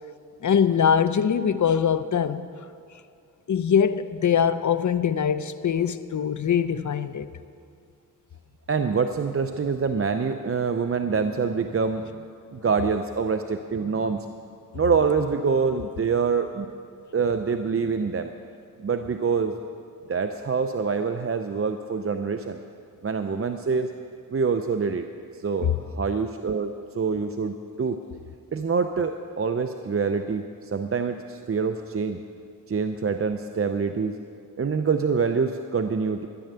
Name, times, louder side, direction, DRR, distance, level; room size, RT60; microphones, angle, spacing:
voice 1, 0.4-2.5 3.5-7.3 25.6-25.7, left 7 dB, 60° left, 12 dB, 0.6 m, -22 dB
voice 2, 8.7-12.1 12.5-14.3 14.7-16.7 17.1-18.3 18.8-19.5 20.1-22.6 23.0-23.9 24.3-25.1 25.4-28.0 28.5-32.2 32.7-34.2 34.6-36.3, right 5 dB, 40° right, 7 dB, 0.6 m, -25 dB
14.0 x 10.5 x 6.8 m, 2.4 s
wide cardioid pair, 70°, 34 cm